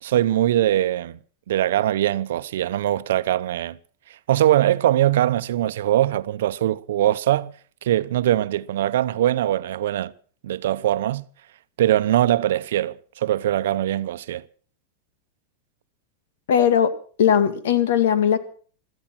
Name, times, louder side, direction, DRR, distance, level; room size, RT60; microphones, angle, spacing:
voice 1, 0.0-1.2 1.5-3.8 4.3-7.5 7.8-10.1 10.4-11.2 11.8-14.4, right 12 dB, 75° right, 0.7 m, -21 dB
voice 2, 16.5-16.9 17.2-18.4, left 8 dB, 80° left, 2.0 m, -18 dB
16.5 x 13.5 x 6.0 m
supercardioid pair, 165°, 0 cm